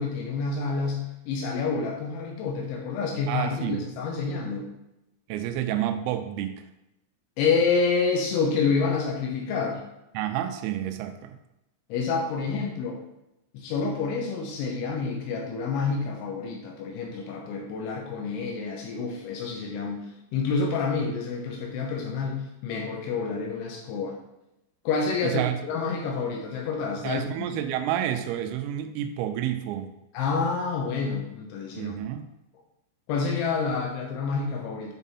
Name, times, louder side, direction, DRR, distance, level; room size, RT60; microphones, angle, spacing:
voice 1, 0.0-4.7 7.4-9.8 11.9-13.0 13.5-24.2 24.9-27.5 30.1-31.9 33.1-34.9, left 4 dB, 75° left, -1 dB, 3.0 m, -28 dB
voice 2, 3.3-3.8 5.3-6.6 10.2-11.4 25.2-25.6 27.0-29.9 31.8-32.3, right 11 dB, 90° right, 8 dB, 3.3 m, -29 dB
9.1 x 3.6 x 4.1 m, 0.90 s
omnidirectional pair, 6.0 m